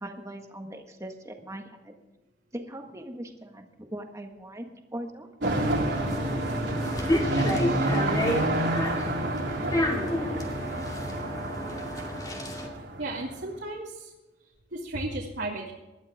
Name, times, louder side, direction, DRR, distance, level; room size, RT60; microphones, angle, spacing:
voice 1, 0.0-1.9 2.5-6.3, right 1 dB, 15° right, 4 dB, 1.7 m, -40 dB
sound 1, 5.4-12.7, left 1 dB, 20° left, 2.5 m, -31 dB
sound 2, 5.4-13.4, right 1 dB, 85° right, 3.3 m, -29 dB
voice 2, 13.0-14.1 14.4-15.7, right 2 dB, 70° right, -4 dB, 2.4 m, -34 dB
20.0 x 12.5 x 3.6 m, 1.1 s
head